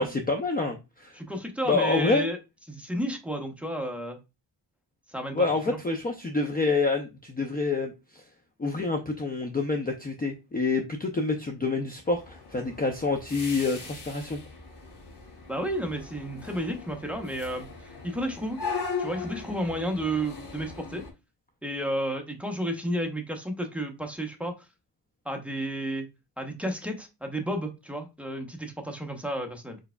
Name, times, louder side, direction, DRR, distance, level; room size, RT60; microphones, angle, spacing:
voice 1, 0.0-1.2 1.7-2.3 5.3-8.2 8.6-14.4, left 3 dB, 20° left, 3 dB, 0.5 m, -27 dB
voice 2, 1.1-2.4 2.7-4.2 5.1-5.4 5.7-5.8 15.5-18.6 19.0-21.0 21.6-24.5 25.2-26.1 26.4-29.8, right 1 dB, 5° right, 3 dB, 0.8 m, -32 dB
sound 1, 12.0-21.1, left 5 dB, 75° left, 2.4 m, -39 dB
4.6 x 4.5 x 2.2 m, 0.26 s
wide cardioid pair, 175°, 41 cm